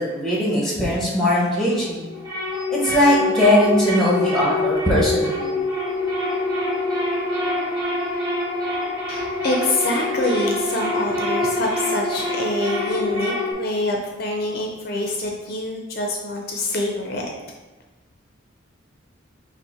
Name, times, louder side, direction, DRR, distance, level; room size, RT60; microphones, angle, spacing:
voice 1, 0.0-2.1 2.7-5.6, left 1 dB, ahead, -5 dB, 1.0 m, -20 dB
sound 1, 1.6-13.5, left 2 dB, 20° right, 0.9 m, -25 dB
voice 2, 9.1-17.3, left 2 dB, 50° left, 1 dB, 0.5 m, -25 dB
5.4 x 2.1 x 4.1 m, 1.1 s
head